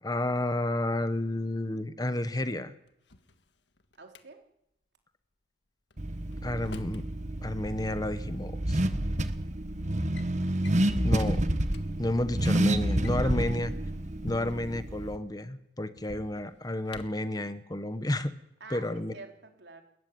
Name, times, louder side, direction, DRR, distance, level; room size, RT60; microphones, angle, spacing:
voice 1, 0.0-2.7 6.4-7.1 7.4-8.8 11.0-11.4 12.0-13.7 14.2-18.3 18.7-19.1, left 1 dB, 20° left, 12 dB, 1.1 m, -31 dB
Drawer open or close, 2.9-4.2 5.9-7.1 8.4-8.5 9.3-9.5 9.9-10.3 10.6-10.9 11.4-11.5 11.7-11.8 12.8-14.8 16.0-17.3, left 2 dB, 70° left, 1.7 m, -48 dB
voice 2, 4.0-4.4 12.3-12.4 13.1-13.4 14.3-14.5 18.6-19.8, right 3 dB, 70° right, 4 dB, 3.8 m, -47 dB
Car / Accelerating revving vroom, 6.0-15.2, right 1 dB, 40° right, 1.4 m, -29 dB
29.5 x 14.5 x 9.5 m, 0.79 s
head